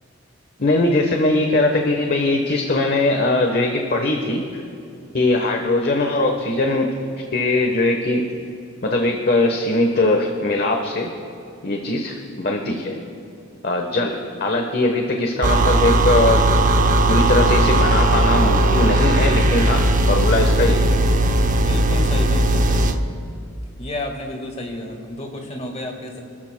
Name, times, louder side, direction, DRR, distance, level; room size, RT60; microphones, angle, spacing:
voice 1, 0.6-4.6 5.1-6.9 7.3-8.2 8.8-11.1 11.6-13.0 13.6-16.4 17.1-21.1, left 2 dB, 50° left, 3 dB, 1.0 m, -20 dB
sound 1, 15.4-23.0, right 1 dB, 40° right, 0.6 m, -17 dB
voice 2, 21.6-23.0 23.8-26.2, left 1 dB, 30° left, 3 dB, 1.6 m, -31 dB
29.5 x 13.5 x 2.2 m, 2.8 s
head